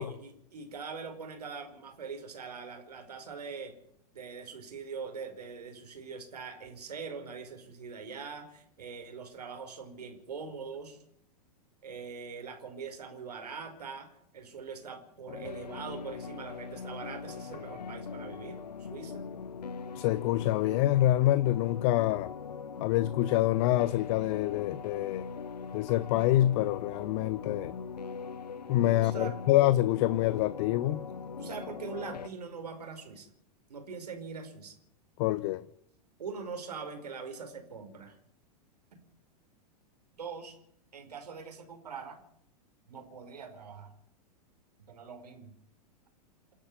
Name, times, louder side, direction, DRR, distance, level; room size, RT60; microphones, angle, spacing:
voice 1, 0.0-3.7 4.1-11.0 11.8-14.1 14.3-19.3 29.0-29.3 31.4-33.3 33.7-34.7 36.2-38.1 38.9-39.0 40.2-40.6 40.9-42.2 42.9-43.9 44.9-45.5, right 5 dB, 75° right, 5 dB, 5.3 m, -42 dB
sound 1, 15.3-32.3, left 5 dB, 80° left, 0.9 m, -41 dB
voice 2, 19.9-22.3 22.8-25.3 25.7-27.7 28.7-31.0 35.2-35.6, left 15 dB, 45° left, 17 dB, 0.9 m, -26 dB
28.0 x 10.0 x 9.8 m, 0.70 s
figure-of-eight pair, 95°, 21 cm